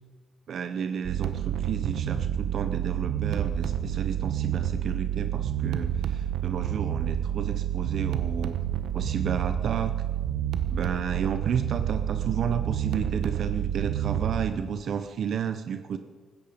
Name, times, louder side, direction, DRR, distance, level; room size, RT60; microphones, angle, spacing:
voice 1, 0.5-8.6 8.9-9.9 10.7-16.0, right 7 dB, 60° right, 10 dB, 0.6 m, -32 dB
sound 1, 1.0-14.5, right 10 dB, 80° right, 1.0 m, -29 dB
15.5 x 13.5 x 5.1 m, 1.5 s
cardioid pair, 90°, 0 cm